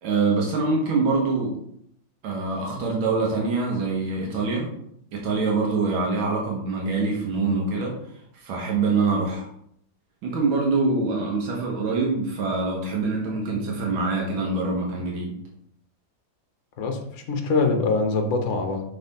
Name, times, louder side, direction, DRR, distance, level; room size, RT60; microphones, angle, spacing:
voice 1, 0.0-1.6 2.2-4.7 5.1-7.9 8.3-9.5 10.2-15.3, right 3 dB, 90° right, -1 dB, 1.9 m, -24 dB
voice 2, 16.8-18.8, left 3 dB, 55° left, 4 dB, 0.8 m, -24 dB
5.5 x 4.2 x 4.1 m, 0.71 s
omnidirectional pair, 2.1 m